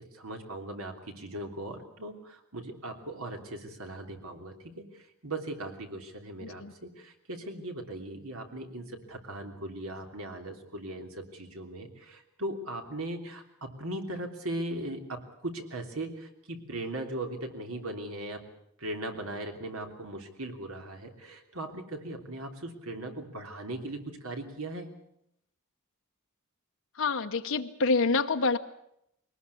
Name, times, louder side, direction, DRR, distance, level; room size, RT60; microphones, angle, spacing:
voice 1, 0.0-18.4 18.8-24.9, right 1 dB, 75° right, 4 dB, 3.2 m, -39 dB
voice 2, 6.4-6.7 27.0-28.6, left 4 dB, 65° left, 6 dB, 1.0 m, -27 dB
21.5 x 19.5 x 8.4 m, 0.76 s
head